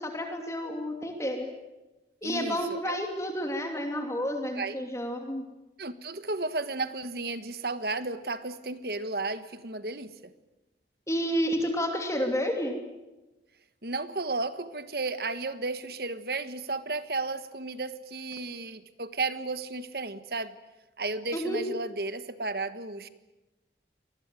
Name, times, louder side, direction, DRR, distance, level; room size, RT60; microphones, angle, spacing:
voice 1, 0.0-1.5 2.2-5.4 11.1-12.8 21.3-21.6, equal, 15° left, 4 dB, 2.7 m, -30 dB
voice 2, 2.2-3.0 4.6-4.8 5.8-10.3 13.8-20.5 21.0-23.1, right 3 dB, 60° right, 13 dB, 1.5 m, -33 dB
26.0 x 20.0 x 9.2 m, 1.1 s
head